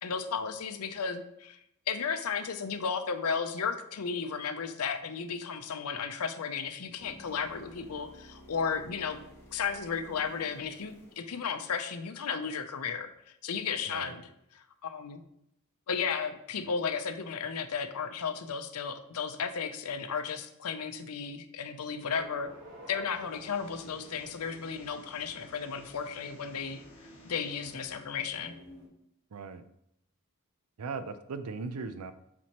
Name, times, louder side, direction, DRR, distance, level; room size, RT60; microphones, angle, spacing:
voice 1, 0.0-9.2 9.5-13.1 13.4-15.2 15.9-22.5 22.9-26.8 27.2-28.5, left 6 dB, 80° left, 9 dB, 0.6 m, -34 dB
sound 1, 7.0-12.1 16.0-16.1, equal, 10° left, 1.3 m, -54 dB
sound 2, 22.1-28.9, equal, 60° right, 2.4 m, -52 dB
sound 3, 23.1-28.1, left 2 dB, 30° left, 1.7 m, -58 dB
voice 2, 29.3-29.6 30.8-32.1, right 4 dB, 85° right, 11 dB, 0.5 m, -38 dB
7.3 x 4.3 x 3.0 m, 0.77 s
head